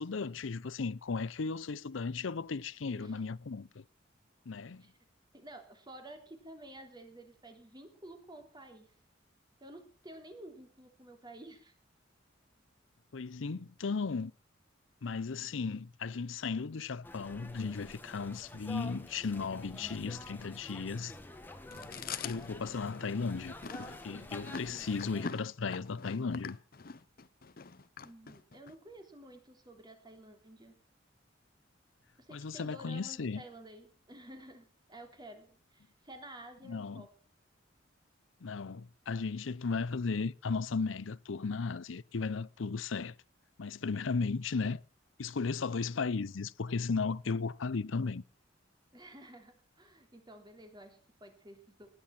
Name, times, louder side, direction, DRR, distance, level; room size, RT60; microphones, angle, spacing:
voice 1, 0.0-3.8 4.5-4.8 13.1-14.3 15.0-21.1 22.2-26.6 32.3-33.4 36.6-37.1 38.4-43.1 43.6-44.8 45.2-48.2, left 4 dB, 80° left, 0.6 m, -35 dB
voice 2, 5.3-8.9 9.6-11.7 24.7-24.9 28.0-30.7 32.2-37.1 48.9-52.0, right 1 dB, 20° right, 3.3 m, -52 dB
sound 1, 17.0-25.3, left 2 dB, 10° left, 1.7 m, -49 dB
Chewing mastication, 21.7-28.7, left 5 dB, 50° left, 0.8 m, -44 dB
19.0 x 10.0 x 5.9 m
head